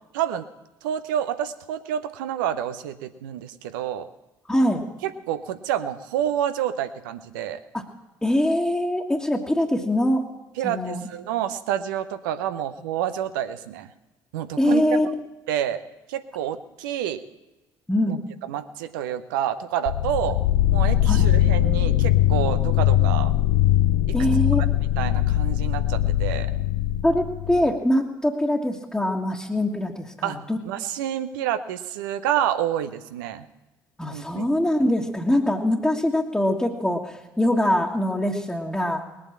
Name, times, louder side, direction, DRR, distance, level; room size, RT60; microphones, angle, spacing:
voice 1, 0.1-0.5 0.8-4.1 5.0-7.6 10.6-13.9 14.3-14.8 15.5-15.8 16.1-17.2 18.1-18.2 18.4-20.4 20.7-23.3 24.8-26.5 30.2-30.4 30.6-33.5 34.1-34.5, right 10 dB, 80° right, 11 dB, 0.8 m, -28 dB
voice 2, 4.5-4.8 7.7-7.8 8.2-10.3 10.6-11.0 14.6-15.1 17.9-18.3 21.1-21.3 24.1-24.7 27.0-30.6 34.0-39.0, left 1 dB, 10° left, -3 dB, 1.6 m, -23 dB
sound 1, 19.9-27.7, left 13 dB, 75° left, 0.5 m, -21 dB
19.5 x 8.8 x 7.4 m, 1.1 s
hypercardioid pair, 55°, 11 cm